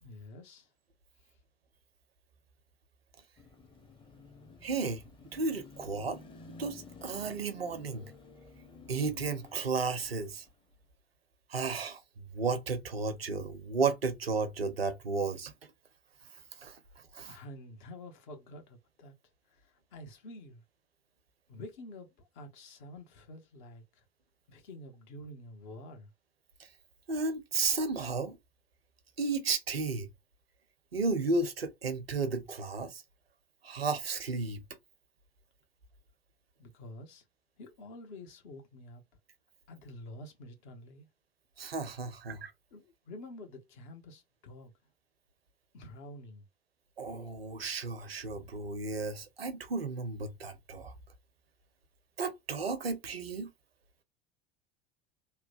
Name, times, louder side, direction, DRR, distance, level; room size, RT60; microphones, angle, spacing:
voice 1, 0.0-0.7 1.2-1.4 17.3-19.1 19.5-20.6 21.5-24.0 24.5-26.1 36.6-37.2 37.6-39.0 39.7-41.1 42.7-44.7 45.7-46.5, left 1 dB, 55° left, 1.0 m, -48 dB
Car passing by / Traffic noise roadway noise / Engine, 3.4-10.7, left 4 dB, 15° left, 0.7 m, -53 dB
voice 2, 4.6-5.1 5.3-6.2 6.6-8.1 8.9-10.4 11.5-15.5 16.6-16.8 17.1-17.3 27.1-28.4 29.2-30.1 30.9-33.0 33.6-34.6 41.6-42.5 47.0-50.9 52.2-53.5, right 4 dB, 85° right, 0.6 m, -33 dB
3.0 x 2.1 x 2.4 m
figure-of-eight pair, 75°, 29 cm